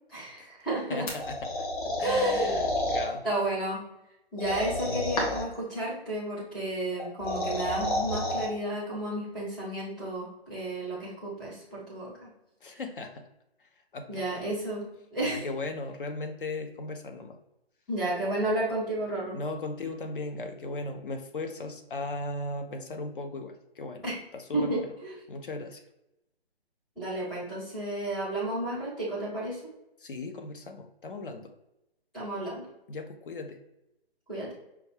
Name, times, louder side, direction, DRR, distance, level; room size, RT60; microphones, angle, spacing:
voice 1, 0.1-1.1 2.0-2.7 3.2-3.8 4.3-12.3 12.7-12.8 14.1-15.4 17.9-19.4 24.0-24.1 24.5-25.1 27.0-29.6 32.1-32.6 34.3-34.5, right 1 dB, ahead, -13 dB, 0.4 m, -32 dB
voice 2, 0.9-1.7 2.0-3.3 12.6-13.3 13.6-14.5 15.2-17.4 19.3-24.1 24.3-24.9 25.3-25.8 30.0-31.5 32.9-33.6, left 2 dB, 55° left, 5 dB, 0.6 m, -37 dB
sound 1, 1.1-3.1 4.4-5.5 7.0-8.5, left 1 dB, 35° left, 1.2 m, -30 dB
5.9 x 2.3 x 3.2 m, 0.88 s
figure-of-eight pair, 135°, 31 cm